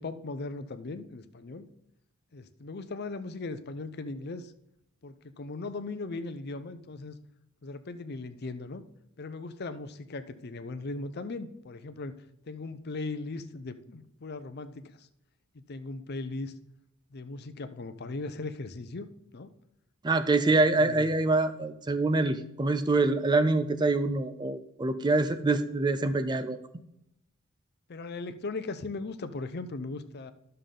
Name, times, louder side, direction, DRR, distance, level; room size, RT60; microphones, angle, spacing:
voice 1, 0.0-1.7 2.3-4.5 5.0-7.2 7.6-8.8 9.2-12.1 12.5-15.1 15.7-16.5 17.1-19.1 19.3-19.5 20.4-21.1 27.9-30.3, left 3 dB, 50° left, 11 dB, 0.6 m, -38 dB
voice 2, 20.0-26.6, right 3 dB, 20° right, 10 dB, 0.4 m, -25 dB
11.5 x 6.7 x 3.8 m, 0.81 s
head